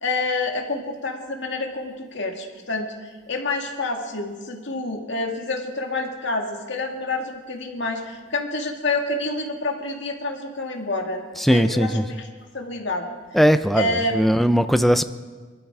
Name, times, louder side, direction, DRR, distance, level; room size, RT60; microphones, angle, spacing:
voice 1, 0.0-12.3 12.5-13.1 13.7-14.4, left 2 dB, 65° left, 2 dB, 2.2 m, -28 dB
voice 2, 11.4-12.1 13.3-15.0, equal, ahead, 10 dB, 0.6 m, -19 dB
24.0 x 12.5 x 4.8 m, 1.4 s
head